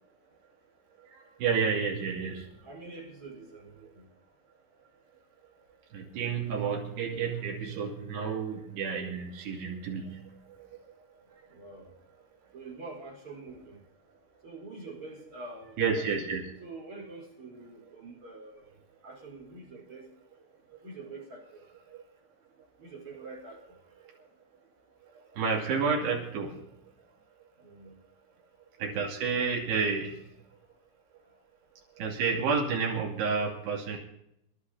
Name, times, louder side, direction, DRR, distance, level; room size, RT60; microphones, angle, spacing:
voice 1, 1.1-2.5 5.9-10.3 15.8-16.4 21.9-22.0 25.3-26.5 28.8-30.2 32.0-34.0, right 5 dB, 75° right, -2 dB, 4.8 m, -30 dB
voice 2, 2.6-4.1 11.5-11.9 12.5-13.8 14.4-16.2 16.6-20.1 20.8-21.7 22.8-23.8 27.6-28.0 31.3-31.4, right 3 dB, 30° right, 0 dB, 5.2 m, -46 dB
29.0 x 11.5 x 2.9 m, 0.78 s
omnidirectional pair, 4.8 m